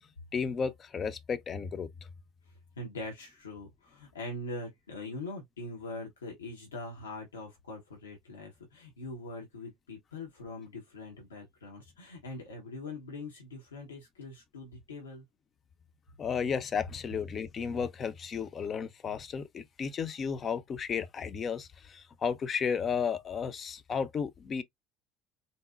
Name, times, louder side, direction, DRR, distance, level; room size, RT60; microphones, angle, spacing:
voice 1, 0.3-1.9 16.2-24.6, left 6 dB, 40° left, 0.5 m, -33 dB
voice 2, 2.5-15.3, left 2 dB, 90° left, 0.9 m, -42 dB
4.0 x 2.0 x 2.4 m
hypercardioid pair, 65°, 0 cm